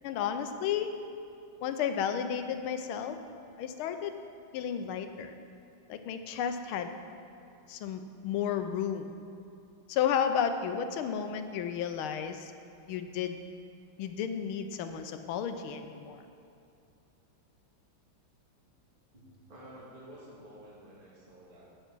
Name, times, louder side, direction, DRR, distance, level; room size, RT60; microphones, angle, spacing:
voice 1, 0.0-0.9 1.6-3.2 3.6-4.1 4.5-5.3 5.9-6.9 7.7-9.1 9.9-12.5 12.9-13.4 14.0-16.2, left 8 dB, 80° left, 8 dB, 1.5 m, -32 dB
voice 2, 19.1-21.6, right 1 dB, 25° right, -7 dB, 2.1 m, -51 dB
8.0 x 8.0 x 6.1 m, 2.6 s
omnidirectional pair, 2.3 m